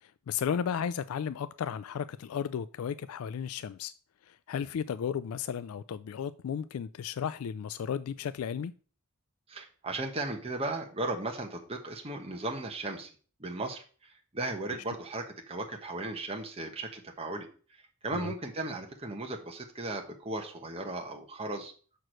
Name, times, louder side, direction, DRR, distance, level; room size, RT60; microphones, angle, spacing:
voice 1, 0.0-3.9 4.3-8.7 18.1-18.3, left 7 dB, 85° left, 0.3 m, -34 dB
voice 2, 9.5-13.1 13.4-21.7, right 2 dB, 30° right, 1.1 m, -36 dB
6.1 x 4.6 x 6.4 m
head